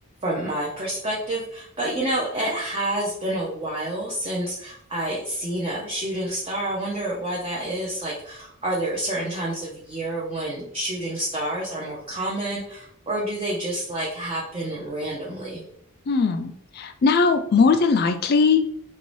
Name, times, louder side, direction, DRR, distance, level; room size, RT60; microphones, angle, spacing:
voice 1, 0.2-15.6, right 1 dB, 25° right, -5 dB, 0.5 m, -28 dB
voice 2, 16.1-18.8, left 4 dB, 45° left, 7 dB, 0.3 m, -20 dB
3.0 x 2.7 x 3.1 m, 0.72 s
head